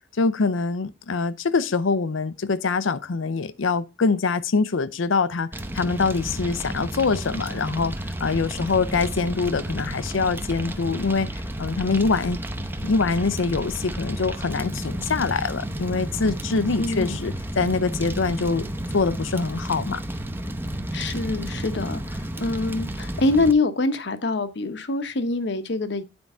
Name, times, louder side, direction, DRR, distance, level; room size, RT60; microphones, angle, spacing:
voice 1, 0.2-7.9 8.2-11.3 11.6-12.4 12.8-18.7 18.9-20.0, left 4 dB, 90° left, 0.6 m, -24 dB
Fire, 5.5-23.5, right 1 dB, 10° right, 0.7 m, -32 dB
voice 2, 16.8-17.2 20.9-26.0, left 3 dB, 60° left, 0.9 m, -25 dB
9.7 x 4.6 x 5.4 m
head